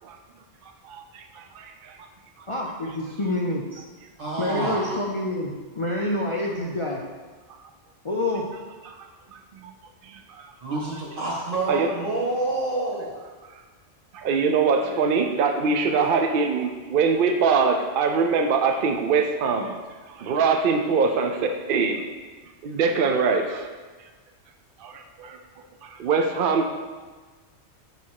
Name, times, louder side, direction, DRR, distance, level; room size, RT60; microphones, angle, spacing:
voice 1, 0.6-2.1 8.8-9.7 10.0-10.5 11.7-11.9 13.5-13.6 14.1-19.7 20.1-22.0 22.6-23.7 24.8-25.4 25.8-26.7, right 5 dB, 60° right, 4 dB, 0.6 m, -23 dB
voice 2, 2.5-3.8 4.4-7.0 8.0-8.4, left 1 dB, 40° left, -2 dB, 0.4 m, -27 dB
voice 3, 4.2-5.0 10.6-13.3 15.9-16.1, right 2 dB, 85° right, -5 dB, 2.1 m, -28 dB
6.5 x 4.2 x 4.7 m, 1.4 s
omnidirectional pair, 1.2 m